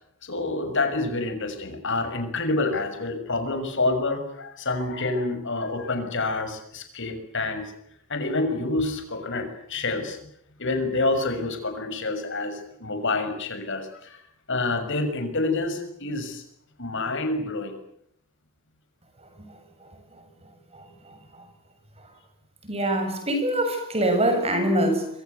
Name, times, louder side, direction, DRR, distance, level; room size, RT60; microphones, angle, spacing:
voice 1, 0.2-7.7 8.1-10.2 10.6-14.2 14.5-16.4 16.8-17.8, left 2 dB, 60° left, 7 dB, 6.4 m, -27 dB
voice 2, 20.7-21.2 22.6-25.1, right 1 dB, 30° right, 7 dB, 7.1 m, -24 dB
26.0 x 26.0 x 8.1 m, 0.71 s
head